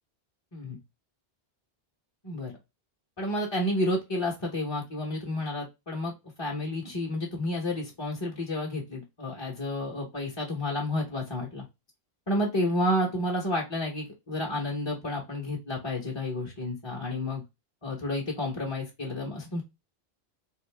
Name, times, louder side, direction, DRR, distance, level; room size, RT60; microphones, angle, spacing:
voice 1, 3.2-6.1 6.4-11.6 12.3-17.4 17.8-19.6, left 1 dB, 25° left, -3 dB, 1.0 m, -30 dB
3.6 x 2.7 x 3.3 m, 0.23 s
omnidirectional pair, 1.1 m